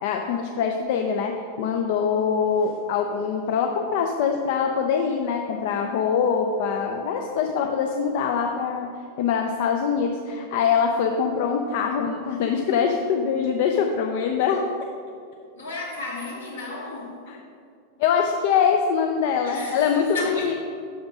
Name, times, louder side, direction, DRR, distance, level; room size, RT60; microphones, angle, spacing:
voice 1, 0.0-8.9 9.2-14.6 17.3-17.4 18.0-20.5, left 6 dB, 50° left, 3 dB, 0.4 m, -23 dB
voice 2, 15.5-17.2 19.4-20.5, left 3 dB, 70° left, -4 dB, 2.0 m, -33 dB
6.2 x 5.1 x 5.9 m, 2.3 s
figure-of-eight pair, 90°, 0 cm